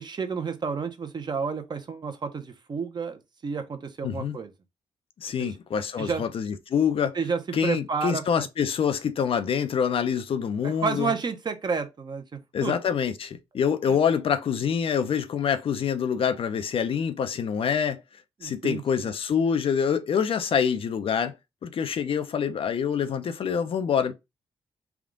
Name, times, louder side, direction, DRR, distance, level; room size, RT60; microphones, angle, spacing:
voice 1, 0.0-4.5 5.4-5.5 6.0-6.2 7.1-8.5 10.6-12.7 13.9-14.0 18.4-19.1, right 5 dB, 40° right, 0.9 m, -31 dB
voice 2, 4.0-4.4 5.2-7.2 7.5-11.1 12.5-18.0 18.4-21.3 21.6-24.1, left 7 dB, 55° left, 0.6 m, -26 dB
3.6 x 2.4 x 3.7 m
cardioid pair, 70°, 11 cm